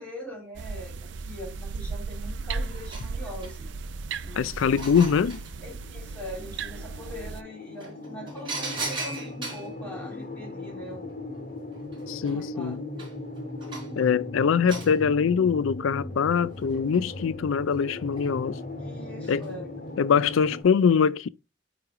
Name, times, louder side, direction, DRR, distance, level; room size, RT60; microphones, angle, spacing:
voice 1, 0.0-3.7 4.2-4.5 5.6-11.3 12.1-13.1 18.8-19.8, left 1 dB, 5° left, 2.7 m, -42 dB
sound 1, 0.5-7.4, right 4 dB, 65° right, 0.4 m, -36 dB
sound 2, 2.1-2.2 2.6-3.8 4.3-5.5 7.2-7.3 7.8-9.7 11.3-11.4 11.7-14.0 14.7-14.9 16.5-17.2 17.7-18.3 19.2-19.5 19.9-20.0, right 3 dB, 25° right, 3.9 m, -38 dB
sound 3, 3.7-20.6, left 2 dB, 45° left, 1.6 m, -39 dB
voice 2, 4.4-5.4 12.1-12.8 14.0-18.6 19.3-19.5 20.0-21.3, left 6 dB, 90° left, 0.4 m, -23 dB
9.3 x 3.3 x 3.5 m
head